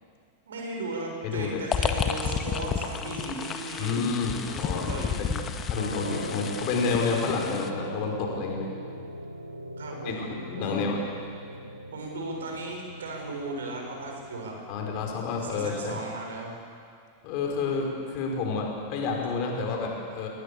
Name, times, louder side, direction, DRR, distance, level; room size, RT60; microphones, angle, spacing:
voice 1, 0.5-4.1 4.5-5.3 9.8-10.9 11.5-14.6 15.4-16.5, right 2 dB, 65° right, 1 dB, 6.7 m, -36 dB
voice 2, 1.2-1.6 3.8-5.4 5.7-8.7 10.0-11.0 14.7-16.0 17.2-20.3, left 4 dB, 45° left, 1 dB, 5.9 m, -30 dB
sound 1, 1.7-7.7, left 7 dB, 25° left, 1.8 m, -31 dB
sound 2, 5.8-15.3, equal, 90° right, 1.6 m, -39 dB
29.0 x 21.0 x 7.3 m, 2.2 s
figure-of-eight pair, 90°, 0 cm